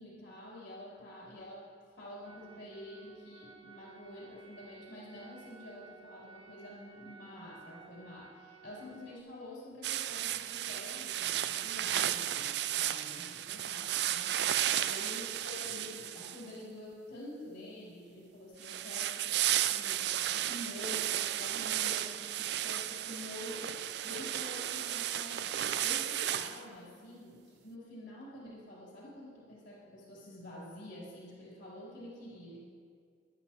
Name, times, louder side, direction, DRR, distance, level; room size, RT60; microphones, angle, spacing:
voice 1, 0.0-1.7 2.0-32.6, left 1 dB, 85° left, -7 dB, 3.6 m, -48 dB
sound 1, 2.2-9.2, right 6 dB, 25° right, 0.6 m, -56 dB
sound 2, 9.8-16.6 18.6-26.6, right 12 dB, 65° right, 0.4 m, -34 dB
19.0 x 10.5 x 3.0 m, 2.1 s
head